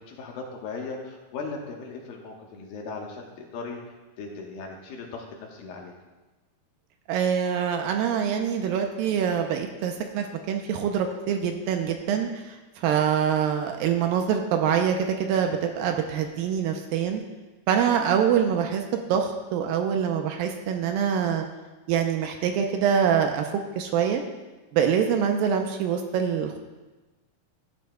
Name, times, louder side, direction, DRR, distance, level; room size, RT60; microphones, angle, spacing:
voice 1, 0.0-3.8 4.2-5.9, left 4 dB, 75° left, 0 dB, 3.0 m, -38 dB
voice 2, 7.1-17.2 17.7-21.4 21.9-24.2 24.7-26.6, right 8 dB, 80° right, 4 dB, 2.3 m, -25 dB
15.0 x 9.5 x 2.3 m, 1.2 s
omnidirectional pair, 4.4 m